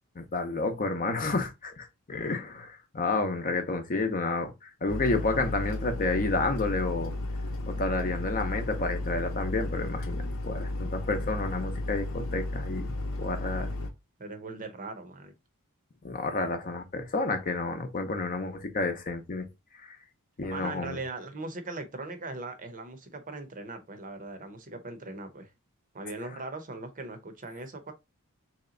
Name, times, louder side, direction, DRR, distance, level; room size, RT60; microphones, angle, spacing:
voice 1, 0.2-7.1 7.7-12.9 13.2-13.7 16.0-19.5 19.8-20.0 20.4-21.0, left 3 dB, 40° left, 0.7 m, -30 dB
sound 1, 4.9-13.9, left 2 dB, 70° left, 0.8 m, -33 dB
voice 2, 13.3-13.7 14.2-15.3 20.5-25.5 25.9-27.9, right 3 dB, 40° right, 0.7 m, -40 dB
3.2 x 2.9 x 3.7 m
head